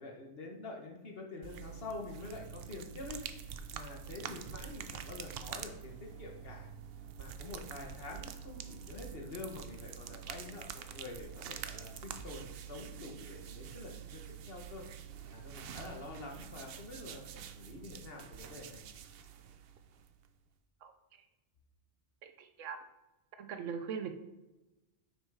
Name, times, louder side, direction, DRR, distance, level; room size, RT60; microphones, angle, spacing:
voice 1, 0.0-3.2 3.7-6.7 7.2-14.8 15.3-18.8, left 3 dB, 55° left, 1 dB, 1.5 m, -47 dB
sound 1, 1.4-20.3, right 8 dB, 60° right, 0.7 m, -46 dB
voice 2, 22.2-22.8 23.4-24.1, right 6 dB, 85° right, 7 dB, 1.1 m, -40 dB
6.2 x 5.5 x 4.7 m, 1.1 s
omnidirectional pair, 1.2 m